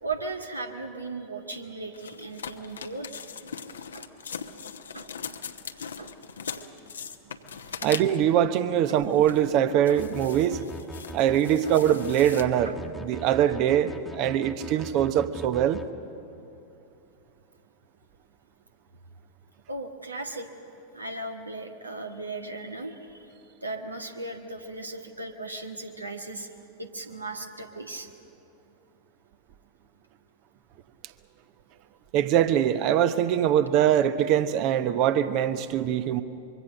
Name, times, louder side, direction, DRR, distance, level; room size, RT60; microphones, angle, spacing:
voice 1, 0.0-3.1 3.9-4.1 4.9-5.1 6.0-6.1 7.9-8.0 8.9-9.0 9.9-10.0 10.9-11.2 12.6-12.7 19.7-20.5 20.9-23.3 23.6-26.5 26.8-28.1, right 2 dB, 80° right, 1.7 m, -37 dB
sound 1, 1.9-8.3 9.0-9.5 9.9-12.4, left 7 dB, 70° left, 1.0 m, -40 dB
voice 2, 7.8-10.6 11.1-15.8 32.1-36.2, right 10 dB, 40° right, 1.0 m, -23 dB
sound 2, 10.0-15.9, equal, 5° left, 1.3 m, -41 dB
24.5 x 23.5 x 6.5 m
figure-of-eight pair, 90°, 0 cm